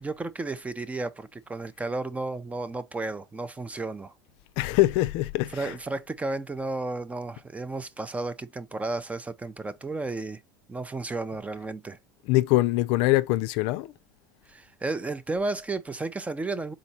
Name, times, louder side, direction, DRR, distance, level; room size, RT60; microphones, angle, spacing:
voice 1, 0.0-4.1 5.5-10.4 10.7-12.0 14.5-16.7, right 3 dB, 15° right, 0.6 m, -33 dB
voice 2, 4.6-5.7 12.3-13.9, left 18 dB, 65° left, 0.4 m, -23 dB
4.1 x 3.9 x 2.8 m
supercardioid pair, 105°, 10 cm